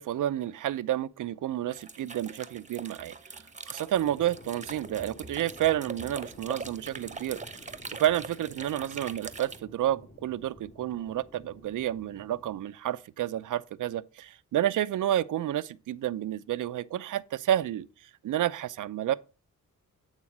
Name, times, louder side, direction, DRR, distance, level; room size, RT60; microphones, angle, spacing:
voice 1, 0.0-7.4 8.0-19.2, right 12 dB, 65° right, 0.6 m, -30 dB
sound 1, 1.7-9.6, right 4 dB, 20° right, 0.9 m, -43 dB
sound 2, 3.9-12.6, left 1 dB, 30° left, 3.8 m, -51 dB
8.8 x 3.7 x 5.9 m
cardioid pair, 60°, 34 cm